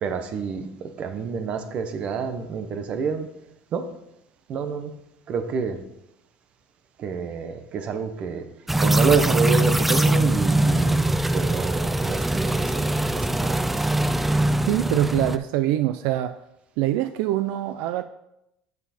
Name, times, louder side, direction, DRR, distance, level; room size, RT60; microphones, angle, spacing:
voice 1, 0.0-3.3 3.7-3.9 4.5-4.9 5.3-5.8 7.0-8.5 8.8-11.1 11.3-13.8, right 5 dB, 40° right, 0.9 m, -28 dB
sound 1, 8.7-15.4, right 1 dB, 5° right, 0.3 m, -22 dB
voice 2, 14.7-16.4 16.8-18.0, right 14 dB, 70° right, 0.4 m, -24 dB
9.2 x 5.8 x 4.3 m
cardioid pair, 145°, 3 cm